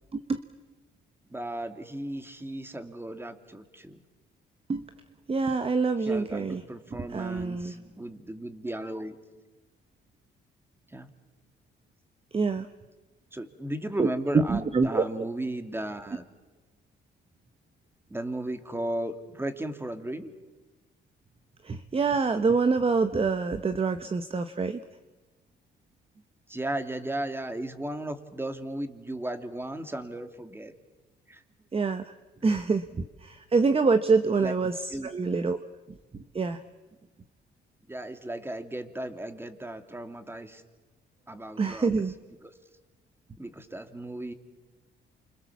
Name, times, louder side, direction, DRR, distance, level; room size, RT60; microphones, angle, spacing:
voice 1, 1.3-4.0 6.0-9.2 10.9-11.1 13.3-16.3 18.1-20.3 26.5-30.7 31.3-31.4 32.4-32.5 34.2-34.5 34.9-35.1 37.9-40.6 41.3-41.9 42.4-42.5 43.4-44.3, right 1 dB, 10° right, 8 dB, 2.7 m, -35 dB
voice 2, 5.3-6.6 7.1-7.7 12.3-12.7 14.0-14.1 14.3-15.0 21.6-24.8 31.7-32.1 32.4-35.6 36.3-36.6 41.6-42.1, right 4 dB, 30° right, 10 dB, 1.1 m, -26 dB
29.5 x 26.0 x 7.3 m, 1.2 s
cardioid pair, 90°, 20 cm